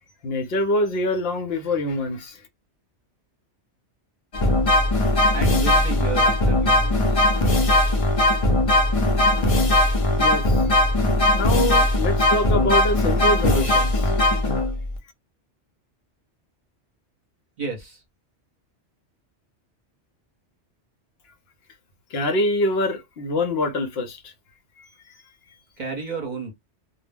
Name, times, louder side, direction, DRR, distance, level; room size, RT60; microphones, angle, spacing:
voice 1, 0.2-2.4 10.1-10.8 11.3-14.1 22.1-24.3 24.8-24.9, left 1 dB, 65° left, 0.8 m, -25 dB
sound 1, 4.3-15.0, left 1 dB, 40° left, 0.5 m, -19 dB
voice 2, 5.3-7.2 17.6-18.0 25.8-26.5, right 4 dB, 45° right, 0.9 m, -32 dB
2.2 x 2.0 x 3.3 m
omnidirectional pair, 1.2 m